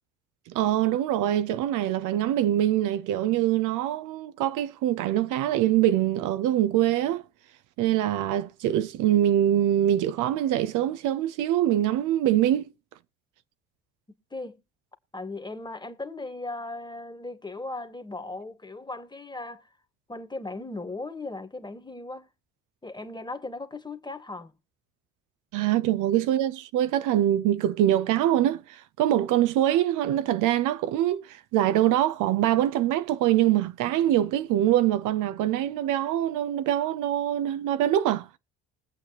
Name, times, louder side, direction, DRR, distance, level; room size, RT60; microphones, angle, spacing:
voice 1, 0.5-7.2 7.8-12.7 25.5-38.3, right 12 dB, 60° right, 0.7 m, -24 dB
voice 2, 15.1-19.7 20.1-22.3 22.8-24.5, left 2 dB, 10° left, 1.7 m, -37 dB
21.5 x 7.9 x 2.9 m
hypercardioid pair, 60°, 34 cm